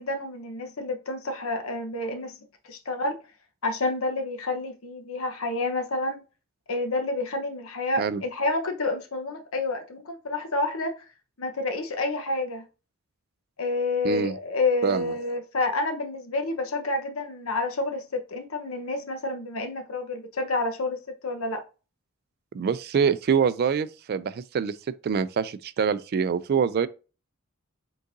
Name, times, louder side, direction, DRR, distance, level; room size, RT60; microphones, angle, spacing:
voice 1, 0.0-2.4 2.7-3.2 3.6-6.2 6.7-10.9 11.4-12.6 13.6-21.0 21.2-21.6, left 2 dB, 75° left, 1.0 m, -29 dB
voice 2, 14.0-14.4 14.8-15.1 22.5-24.8 25.0-26.9, right 6 dB, 50° right, 0.3 m, -25 dB
5.2 x 3.8 x 2.6 m
head